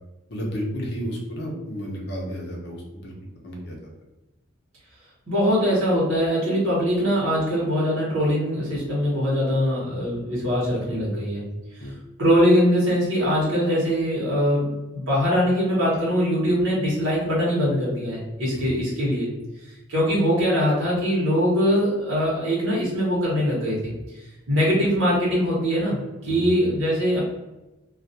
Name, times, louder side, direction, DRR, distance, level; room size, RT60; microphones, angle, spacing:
voice 1, 0.3-3.1 3.4-3.8 11.8-11.9 18.5-18.7 26.3-26.6, equal, 55° left, -1 dB, 0.6 m, -32 dB
voice 2, 5.3-11.4 12.2-19.3 19.9-23.9 24.5-27.2, equal, 80° right, -6 dB, 1.1 m, -22 dB
2.3 x 2.3 x 2.7 m, 1.0 s
head